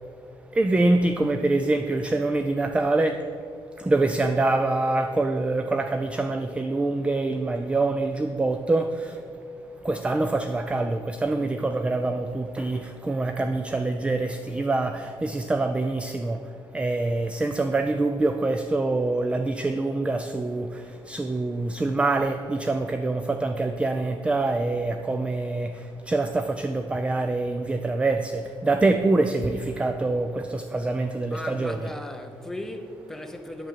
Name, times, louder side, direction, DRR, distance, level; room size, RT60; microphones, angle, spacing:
voice 1, 0.5-3.3 3.8-9.2 9.8-31.8, right 2 dB, 10° right, 0.4 m, -25 dB
voice 2, 31.3-33.7, left 1 dB, 5° left, 0.8 m, -37 dB
8.9 x 6.7 x 7.4 m
cardioid pair, 150°, 9 cm